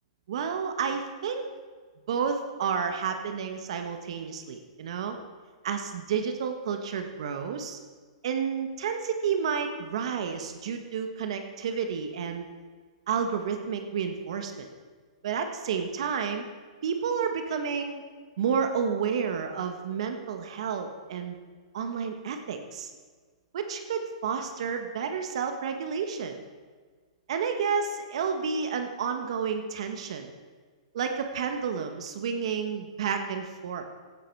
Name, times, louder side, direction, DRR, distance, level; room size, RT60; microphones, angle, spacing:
voice 1, 0.3-1.4 2.1-5.2 5.6-7.8 8.2-12.5 13.1-14.7 15.2-16.4 16.8-18.0 18.4-21.4 21.7-22.9 23.5-26.4 27.3-30.3 30.9-33.8, right 6 dB, 65° right, 6 dB, 1.4 m, -30 dB
16.0 x 11.5 x 4.8 m, 1.5 s
hypercardioid pair, 140°, 3 cm